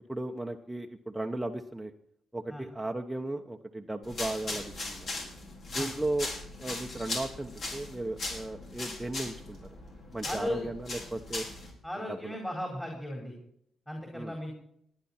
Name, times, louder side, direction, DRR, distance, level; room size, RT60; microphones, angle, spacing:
voice 1, 0.1-1.9 2.3-5.2 5.7-6.3 6.6-9.6 10.1-11.4 12.1-12.4 14.1-14.3, right 2 dB, 10° right, 2 dB, 1.1 m, -36 dB
sound 1, 4.0-11.7, left 2 dB, 55° left, 5.7 m, -39 dB
voice 2, 10.2-10.7 11.8-13.3 13.9-14.5, left 1 dB, 10° left, 0 dB, 4.5 m, -36 dB
19.0 x 10.0 x 4.4 m, 0.70 s
cardioid pair, 70°, 0 cm